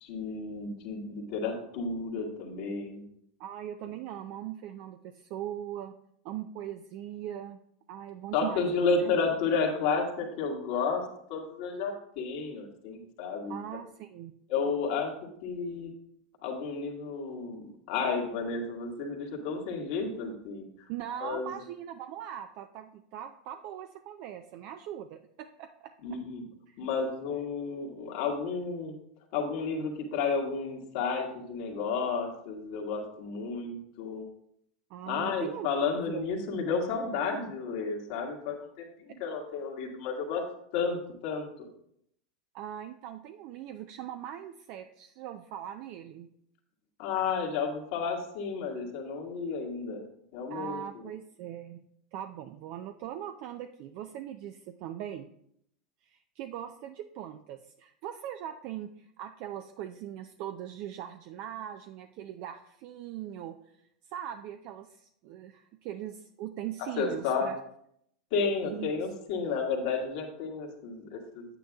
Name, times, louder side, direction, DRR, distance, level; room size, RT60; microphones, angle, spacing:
voice 1, 0.0-3.0 8.3-11.0 11.3-13.6 14.5-15.1 15.4-15.9 16.4-20.7 21.2-21.5 26.0-26.4 26.8-28.9 29.3-34.3 35.1-40.4 40.7-41.7 47.0-50.0 50.3-50.8 67.0-67.5 68.3-71.5, left 5 dB, 65° left, 0 dB, 1.8 m, -32 dB
voice 2, 3.4-6.0 6.2-7.6 7.9-9.1 13.5-14.3 20.9-25.9 26.7-26.8 34.9-35.7 36.1-36.3 42.5-46.3 50.5-51.8 52.1-55.3 56.0-63.8 64.1-67.6 68.6-68.9, right 11 dB, 55° right, 7 dB, 0.5 m, -40 dB
8.9 x 8.7 x 2.4 m, 0.72 s
hypercardioid pair, 110°, 4 cm